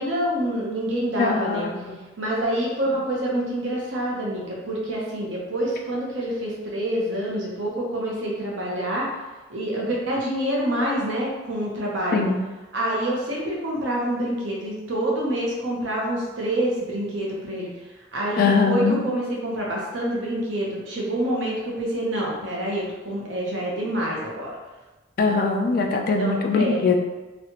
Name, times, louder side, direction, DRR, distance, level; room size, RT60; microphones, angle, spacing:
voice 1, 0.0-1.7 2.2-9.1 9.5-12.2 12.7-17.7 18.1-24.5 25.2-25.4 26.2-27.0, right 1 dB, 80° right, -4 dB, 0.9 m, -27 dB
voice 2, 1.2-2.0 12.1-12.4 18.4-19.0 25.2-27.0, left 4 dB, 50° left, 2 dB, 0.3 m, -21 dB
3.1 x 2.3 x 2.9 m, 1.2 s
head